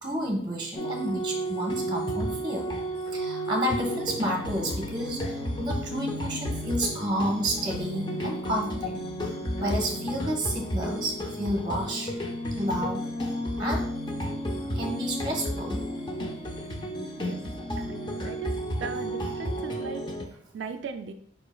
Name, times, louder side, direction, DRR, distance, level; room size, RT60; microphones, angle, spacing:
voice 1, 0.0-2.7 3.1-9.0 9.6-12.1 12.6-13.1 13.6-13.9 14.7-15.8, equal, 25° right, 1 dB, 1.1 m, -30 dB
sound 1, 0.7-20.2, equal, 25° left, 0.5 m, -32 dB
voice 2, 17.8-18.5 18.8-21.1, right 5 dB, 80° right, 6 dB, 0.3 m, -38 dB
4.9 x 4.8 x 2.3 m, 0.64 s
head